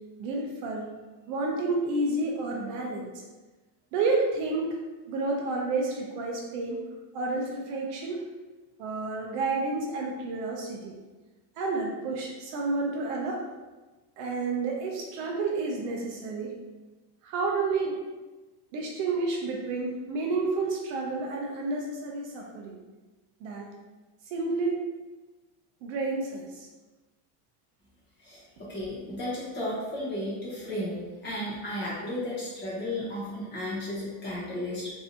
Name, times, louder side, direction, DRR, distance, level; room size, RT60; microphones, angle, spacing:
voice 1, 0.2-0.9 1.3-3.1 3.9-4.8 5.1-6.8 7.1-8.2 8.8-10.9 11.6-13.4 14.2-16.5 17.2-18.0 18.7-22.8 23.4-23.7 24.3-24.9 25.8-26.7, right 3 dB, 50° right, 0 dB, 0.5 m, -30 dB
voice 2, 28.7-34.9, left 1 dB, 25° left, -7 dB, 0.7 m, -34 dB
3.2 x 2.6 x 2.7 m, 1.2 s
cardioid pair, 180°, 47 cm